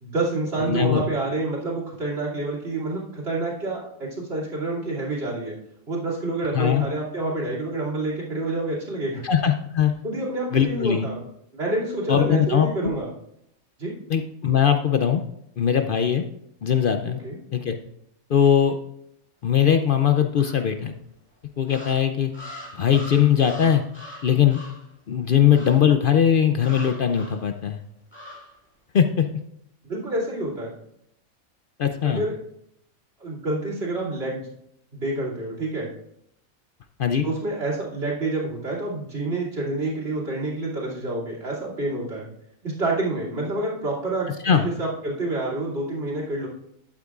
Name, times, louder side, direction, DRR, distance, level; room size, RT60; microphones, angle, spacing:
voice 1, 0.0-5.5 5.9-9.2 10.0-11.2 11.5-13.1 13.8-13.9 17.2-17.4 29.8-30.7 32.0-32.3 33.2-34.5 34.9-35.9 37.2-42.3 42.6-46.5, right 2 dB, 45° right, -4 dB, 2.9 m, -28 dB
voice 2, 0.7-1.0 6.5-6.8 9.2-9.9 10.5-11.1 12.1-12.9 14.1-15.2 15.6-16.2 16.6-17.2 17.5-17.8 18.3-18.8 19.4-20.9 21.6-22.3 22.8-23.8 24.2-24.6 25.1-27.8 28.9-29.3 31.8-32.2 37.0-37.3 44.4-44.7, left 8 dB, 60° left, 7 dB, 0.5 m, -20 dB
sound 1, 20.4-21.0 21.6-24.9 25.5-25.9 26.6-27.5 28.1-28.6, left 1 dB, 10° left, 2.4 m, -42 dB
12.0 x 8.3 x 2.4 m, 0.77 s
omnidirectional pair, 1.5 m